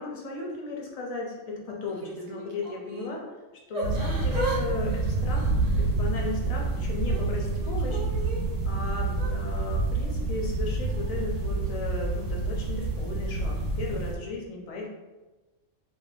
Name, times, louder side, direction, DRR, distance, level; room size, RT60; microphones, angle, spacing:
voice 1, 0.0-3.2 3.7-8.0 8.6-14.9, left 3 dB, 60° left, -1 dB, 0.4 m, -36 dB
Yell / Crying sobbing, 1.9-3.1 3.7-4.6 4.9-6.3 6.8-8.4 9.1-9.3, right 2 dB, 60° right, 0.4 m, -37 dB
sound 1, 3.8-14.1, right 3 dB, 75° right, 0.9 m, -28 dB
2.6 x 2.1 x 3.2 m, 1.2 s
omnidirectional pair, 1.3 m